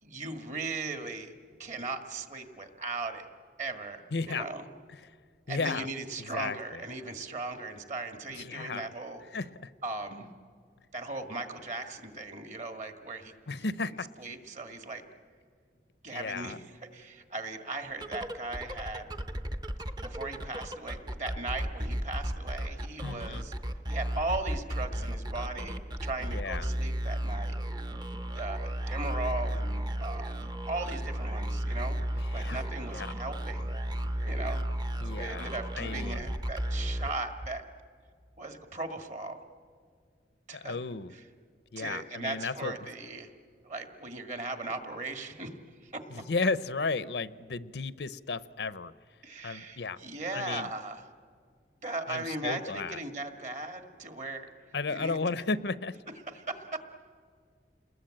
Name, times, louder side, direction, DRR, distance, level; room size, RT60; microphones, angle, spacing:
voice 1, 0.0-1.3 1.6-3.3 3.6-4.7 5.5-9.2 9.8-10.3 10.9-13.3 14.2-15.0 16.0-16.6 16.9-19.1 20.0-23.5 23.9-27.5 28.3-33.7 34.3-34.6 35.1-37.6 38.4-39.4 40.5-40.8 41.8-43.3 43.6-45.5 45.8-46.0 49.2-51.0 51.8-54.5 54.9-55.2 56.3-56.8, right 2 dB, 40° right, 6 dB, 1.9 m, -38 dB
voice 2, 4.1-4.5 4.9-5.1 5.5-5.9 6.2-6.8 8.3-8.9 9.3-9.7 13.5-14.1 16.1-16.6 23.0-23.4 26.2-26.7 32.2-32.6 32.9-33.1 35.0-36.3 40.5-41.1 41.7-42.7 46.1-48.9 49.4-50.0 50.3-50.7 52.1-53.0 54.7-56.0, left 4 dB, 75° left, 15 dB, 0.7 m, -34 dB
sound 1, 17.9-37.7, equal, 25° right, 0.8 m, -34 dB
28.5 x 21.0 x 8.8 m, 2.1 s
head